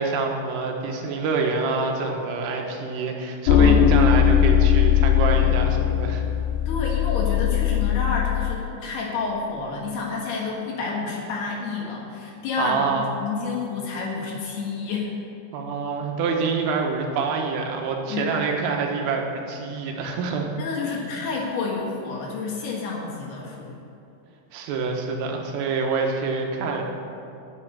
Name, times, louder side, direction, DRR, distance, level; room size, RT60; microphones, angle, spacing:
voice 1, 0.0-6.2 12.6-13.1 15.5-20.5 20.8-21.0 24.5-26.8, right 4 dB, 90° right, 1 dB, 3.9 m, -26 dB
sound 1, 3.5-8.6, left 9 dB, 85° left, 2.6 m, -19 dB
voice 2, 3.5-4.1 6.7-15.1 18.1-18.3 20.6-23.8, left 4 dB, 65° left, -2 dB, 3.1 m, -29 dB
10.5 x 7.6 x 8.9 m, 2.8 s
omnidirectional pair, 5.7 m